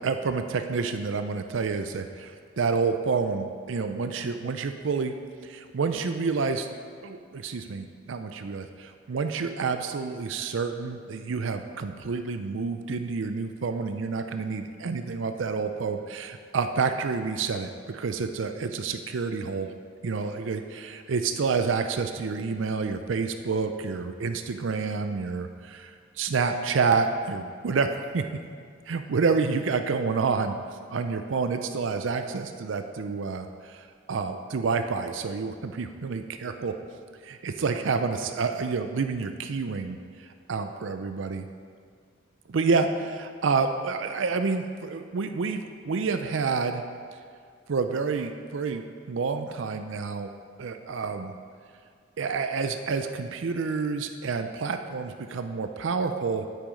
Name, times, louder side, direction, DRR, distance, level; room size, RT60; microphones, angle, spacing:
voice 1, 0.0-5.1 5.4-6.7 7.0-19.7 20.0-28.2 28.9-30.6 30.9-36.7 37.2-41.5 42.5-46.8 47.7-50.3 50.6-51.4 52.2-56.5, right 4 dB, 75° right, 7 dB, 0.5 m, -29 dB
9.2 x 8.5 x 5.1 m, 2.1 s
head